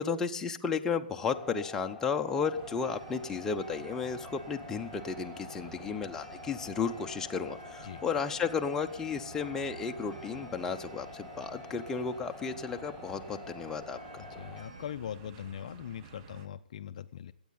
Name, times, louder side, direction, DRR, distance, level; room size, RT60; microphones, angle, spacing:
voice 1, 0.0-14.2, left 5 dB, 10° left, 4 dB, 0.7 m, -33 dB
sound 1, 1.3-14.6, left 3 dB, 5° right, 1.7 m, -48 dB
sound 2, 2.6-16.5, right 5 dB, 35° right, 1.0 m, -52 dB
Clock, 2.8-14.9, right 2 dB, 60° right, 2.6 m, -55 dB
voice 2, 14.2-17.3, left 9 dB, 50° left, 12 dB, 0.5 m, -41 dB
21.5 x 8.6 x 4.1 m, 0.80 s
figure-of-eight pair, 130°, 5 cm